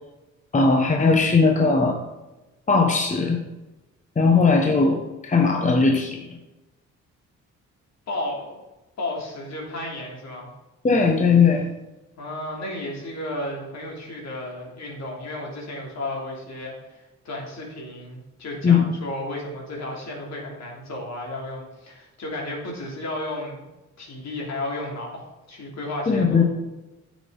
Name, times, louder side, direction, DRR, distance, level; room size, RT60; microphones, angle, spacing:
voice 1, 0.5-2.0 2.7-3.4 4.2-6.3 10.8-11.7 18.6-18.9 26.1-26.4, left 4 dB, 25° left, 3 dB, 1.0 m, -19 dB
voice 2, 8.1-8.6 9.0-10.5 12.2-23.7 24.0-26.4, left 1 dB, 60° left, -1 dB, 2.9 m, -33 dB
9.6 x 7.2 x 3.9 m, 1.1 s
cardioid pair, 90°, 30 cm